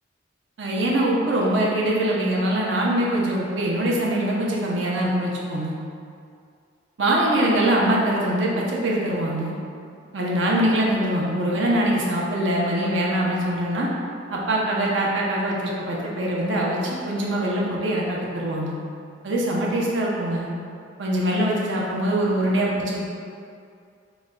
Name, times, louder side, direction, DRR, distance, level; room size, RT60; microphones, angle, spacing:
voice 1, 0.6-5.7 7.0-9.6 10.1-13.9 14.3-18.7 19.2-20.5 21.0-23.0, right 1 dB, 70° right, -3 dB, 0.6 m, -23 dB
3.0 x 2.2 x 3.7 m, 2.3 s
head